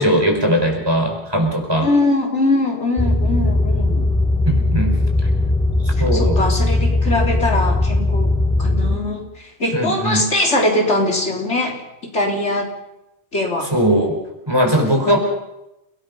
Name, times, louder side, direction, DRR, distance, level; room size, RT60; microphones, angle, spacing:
voice 1, 0.0-1.9 4.4-5.0 5.8-6.5 9.7-10.3 13.7-14.2 14.5-15.2, equal, 20° right, 2 dB, 5.0 m, -19 dB
voice 2, 1.8-4.1 6.0-12.7 13.3-13.7 15.0-15.2, left 2 dB, 90° left, 1 dB, 4.0 m, -22 dB
sound 1, 3.0-9.0, left 2 dB, 5° left, 1.6 m, -18 dB
29.5 x 19.0 x 5.6 m, 0.88 s
omnidirectional pair, 1.1 m